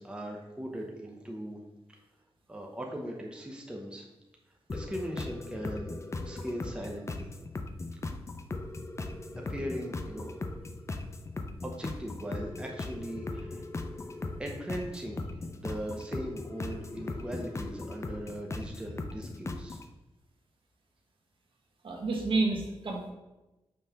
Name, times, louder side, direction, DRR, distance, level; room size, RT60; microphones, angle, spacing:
voice 1, 0.0-1.6 2.5-4.1 4.7-7.3 9.4-10.3 11.6-13.6 14.4-19.8, equal, 10° right, 0 dB, 0.8 m, -39 dB
sound 1, 4.7-19.9, left 2 dB, 30° left, 0.5 m, -38 dB
voice 2, 21.8-23.1, right 3 dB, 55° right, 0 dB, 1.3 m, -29 dB
5.5 x 3.2 x 5.7 m, 1.0 s
wide cardioid pair, 100°, 10 cm